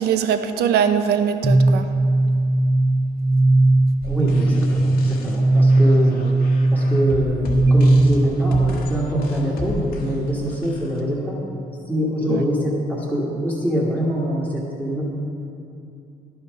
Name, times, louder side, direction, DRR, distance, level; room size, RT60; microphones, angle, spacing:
voice 1, 0.0-1.9 12.3-12.4, right 8 dB, 75° right, 9 dB, 0.6 m, -21 dB
sound 1, 1.4-9.0, right 2 dB, 25° right, 1.0 m, -18 dB
sound 2, 4.0-11.0, left 3 dB, 65° left, 1.2 m, -34 dB
voice 2, 4.0-6.3 6.7-11.4 11.8-15.0, equal, 10° right, -9 dB, 1.6 m, -24 dB
11.0 x 5.8 x 5.3 m, 2.6 s
cardioid pair, 110°, 17 cm